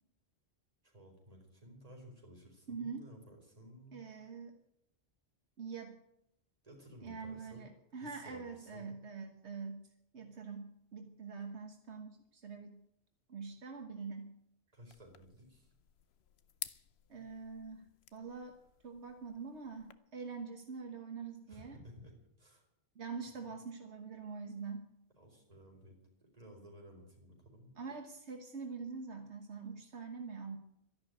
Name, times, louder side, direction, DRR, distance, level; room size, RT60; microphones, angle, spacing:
voice 1, 0.8-4.0 6.6-7.7 8.0-8.9 14.7-15.7 21.5-22.6 23.4-23.5 25.2-27.7, equal, 35° right, 0 dB, 4.6 m, -56 dB
voice 2, 2.7-3.1 3.9-4.6 5.6-6.0 7.0-9.8 10.1-12.8 13.3-14.3 17.1-18.6 18.8-21.8 22.9-24.9 27.8-30.6, right 5 dB, 75° right, 4 dB, 1.6 m, -44 dB
sound 1, 14.9-19.9, left 9 dB, 70° left, 1.0 m, -52 dB
13.0 x 11.0 x 9.3 m, 0.79 s
omnidirectional pair, 1.1 m